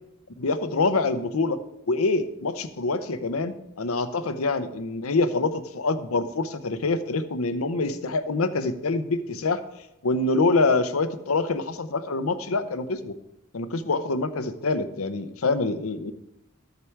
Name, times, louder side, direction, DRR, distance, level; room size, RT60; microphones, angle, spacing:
voice 1, 0.4-1.6 1.9-9.6 10.0-13.1 13.5-16.1, left 3 dB, 85° left, 10 dB, 0.8 m, -25 dB
13.0 x 6.8 x 4.6 m, 0.87 s
head